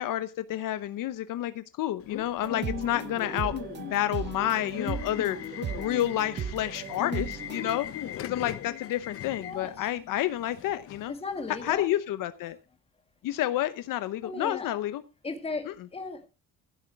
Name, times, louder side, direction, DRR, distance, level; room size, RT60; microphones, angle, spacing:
voice 1, 0.0-11.1 11.5-12.6 13.2-15.0 15.7-15.8, left 13 dB, 70° left, 0.9 m, -30 dB
Subway metro underground / Alarm, 2.0-11.8, left 10 dB, 40° left, 0.8 m, -39 dB
sound 1, 2.4-7.7, right 7 dB, 30° right, 0.9 m, -37 dB
voice 2, 9.4-9.9 11.1-11.9 14.2-14.8 15.2-16.3, left 3 dB, 15° left, 2.0 m, -36 dB
15.5 x 8.0 x 4.6 m
cardioid pair, 175°, 35 cm